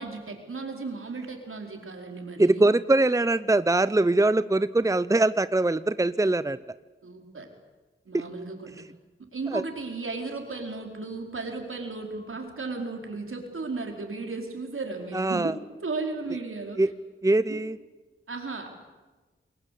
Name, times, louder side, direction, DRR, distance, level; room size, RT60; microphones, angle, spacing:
voice 1, 0.0-2.7 7.0-7.5 8.1-8.8 9.2-16.8 17.5-17.6 18.3-18.7, right 3 dB, 85° right, 3 dB, 4.7 m, -35 dB
voice 2, 2.4-6.6 8.1-8.2 9.5-9.6 15.1-15.5 16.8-16.9 17.2-17.8, right 2 dB, 15° right, 15 dB, 0.7 m, -22 dB
27.0 x 21.5 x 8.5 m, 1.2 s
wide cardioid pair, 65°, 21 cm